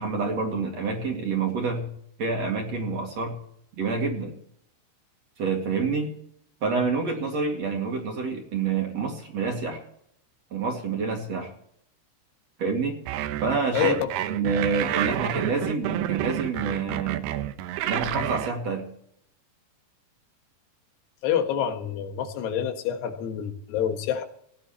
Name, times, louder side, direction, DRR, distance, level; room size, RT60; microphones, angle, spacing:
voice 1, 0.0-1.9 2.2-3.3 3.8-4.3 5.4-6.1 6.6-9.8 10.5-11.5 12.6-13.0 13.4-13.9 14.3-17.3 17.8-18.8, right 4 dB, 45° right, 1 dB, 3.0 m, -27 dB
sound 1, 13.1-18.5, right 12 dB, 80° right, 2.8 m, -29 dB
voice 2, 13.7-14.1 21.2-24.2, left 8 dB, 85° left, 6 dB, 3.4 m, -27 dB
18.0 x 11.0 x 4.3 m, 0.68 s
omnidirectional pair, 4.7 m